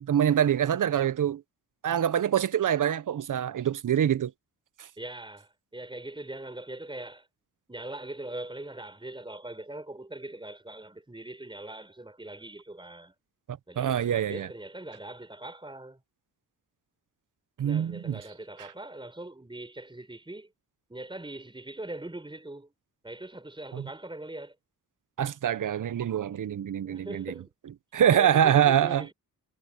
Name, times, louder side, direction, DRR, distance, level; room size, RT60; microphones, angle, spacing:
voice 1, 0.0-1.4 1.8-4.3 4.8-4.9 13.5-14.5 17.6-18.2 23.7-23.8 25.2-27.3 27.9-29.1, right 9 dB, 55° right, 0.9 m, -25 dB
voice 2, 5.0-7.3 7.7-13.1 13.7-16.0 17.6-20.5 20.9-22.7 23.0-24.5 26.8-27.5 28.1-29.1, right 1 dB, 15° right, 4.7 m, -41 dB
cardioid pair, 75°, 37 cm